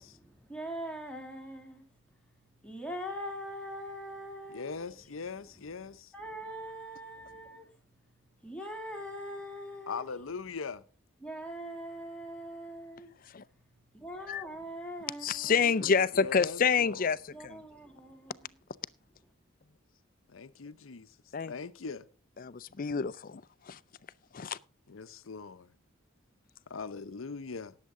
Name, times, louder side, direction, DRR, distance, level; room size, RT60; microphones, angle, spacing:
voice 1, 0.3-4.9 5.8-10.1 11.2-15.9 17.3-18.5, equal, 5° left, 2.2 m, -43 dB
voice 2, 4.5-6.1 9.9-10.8 16.1-17.1 20.3-21.1 21.5-22.0 24.9-25.7 26.7-27.8, left 5 dB, 80° left, 0.7 m, -40 dB
voice 3, 15.2-17.2 17.4-17.6 21.3-21.5 22.4-23.4 23.7-23.8 24.3-24.6, left 6 dB, 45° left, 0.4 m, -28 dB
18.5 x 7.5 x 3.7 m
head